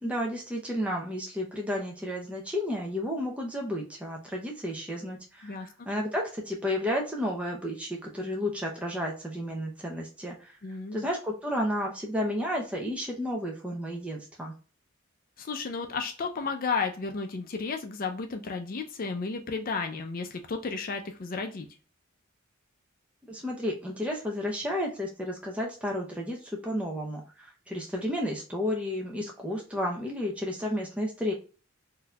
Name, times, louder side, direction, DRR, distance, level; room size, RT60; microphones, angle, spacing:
voice 1, 0.0-10.5 10.9-14.5 23.3-31.3, equal, 5° right, -1 dB, 0.6 m, -32 dB
voice 2, 10.6-11.1 15.4-21.7, left 4 dB, 45° left, 6 dB, 0.4 m, -33 dB
3.9 x 2.7 x 2.2 m, 0.37 s
head